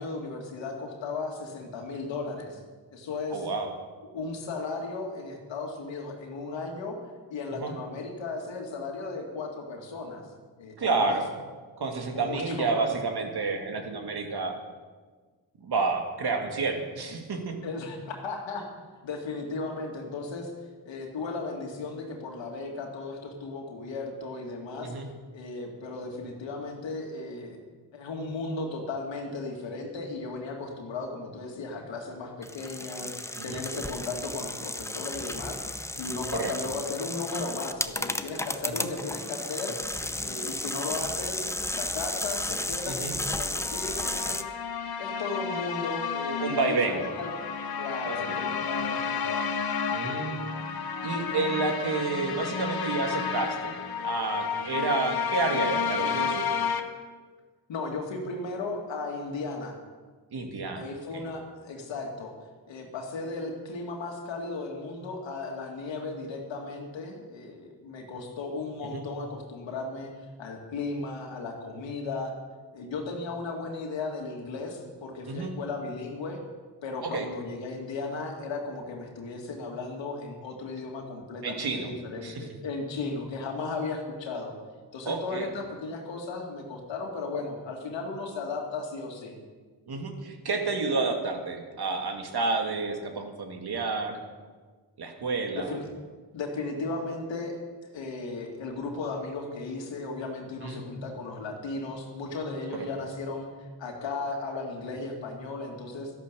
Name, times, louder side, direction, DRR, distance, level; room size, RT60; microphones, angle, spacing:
voice 1, 0.0-2.6 2.9-3.5 4.1-7.0 7.3-10.2 10.6-11.2 12.1-12.9 17.6-18.7 19.0-20.5 20.8-24.9 25.3-27.6 27.9-39.8 40.2-41.4 41.7-44.4 45.0-47.3 47.8-49.6 57.7-59.8 60.7-62.3 62.7-70.1 70.4-72.3 72.7-76.4 76.8-84.5 84.9-89.4 95.5-95.9 96.3-97.6 97.8-106.1, left 3 dB, 85° left, 2 dB, 2.5 m, -35 dB
voice 2, 3.3-3.7 7.5-7.7 10.8-11.2 11.8-14.6 15.6-17.5 24.8-25.1 33.4-33.6 36.3-36.5 38.6-38.9 42.9-43.2 46.4-47.0 48.1-48.5 49.9-50.5 51.0-53.7 54.0-56.5 60.3-60.9 61.1-61.3 68.8-69.1 75.3-75.5 77.0-77.3 81.4-81.9 82.2-82.5 85.1-85.5 89.9-94.2 95.0-95.8 100.6-101.0 102.7-102.9, right 4 dB, 60° right, 4 dB, 2.3 m, -30 dB
sound 1, 32.4-44.4, left 1 dB, 5° left, 0.7 m, -33 dB
sound 2, 43.4-56.8, left 6 dB, 55° left, 1.3 m, -31 dB
13.0 x 11.5 x 6.9 m, 1.4 s
cardioid pair, 65°, 44 cm